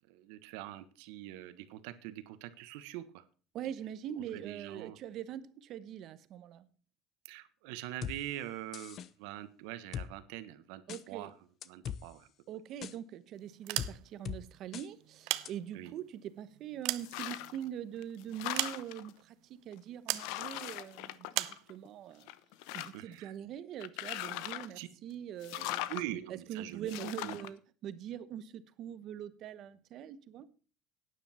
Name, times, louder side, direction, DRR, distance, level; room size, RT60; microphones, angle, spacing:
voice 1, 0.1-3.3 4.3-5.0 7.2-10.8 11.1-11.3 11.6-12.3 15.7-15.9 22.9-23.3 24.7-24.9 25.9-26.9 27.2-27.3, right 14 dB, 90° right, 1.3 m, -43 dB
voice 2, 3.5-6.7 10.9-11.3 12.5-22.3 22.7-25.9 26.3-30.5, right 10 dB, 50° right, 1.1 m, -43 dB
sound 1, 8.0-8.2 8.7-9.1 9.9-10.1 10.9-11.0 11.6-12.0 12.8-12.9 13.8-13.9 14.3-14.4 14.7-14.9 15.5-15.6, left 8 dB, 45° left, 0.8 m, -39 dB
sound 2, 13.5-14.3 15.0-16.0 16.5-17.8 18.5-19.2 20.1-20.3 21.3-21.6, right 19 dB, 75° right, 0.8 m, -36 dB
sound 3, 17.0-17.6 18.0-19.1 19.7-19.8 20.1-21.9 22.2-23.1 23.8-24.8 25.4-26.0 26.9-27.5, left 16 dB, 80° left, 0.8 m, -40 dB
12.5 x 9.9 x 4.4 m
cardioid pair, 145°, 0 cm